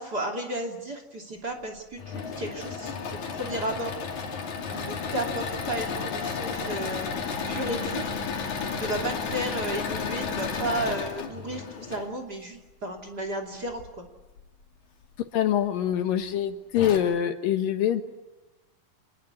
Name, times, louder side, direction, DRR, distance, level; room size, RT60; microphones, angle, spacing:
voice 1, 0.0-4.3 4.7-7.1 7.5-8.2 8.8-14.0, right 1 dB, 30° right, 4 dB, 2.9 m, -33 dB
Engine / Mechanisms, 1.8-12.1 13.7-14.4 15.0-15.1 15.4-15.5 16.4-16.5 16.7-17.0, left 5 dB, 55° left, 3.9 m, -32 dB
voice 2, 15.3-18.0, left 10 dB, 70° left, 7 dB, 2.9 m, -24 dB
28.5 x 20.5 x 9.7 m, 1.1 s
omnidirectional pair, 4.2 m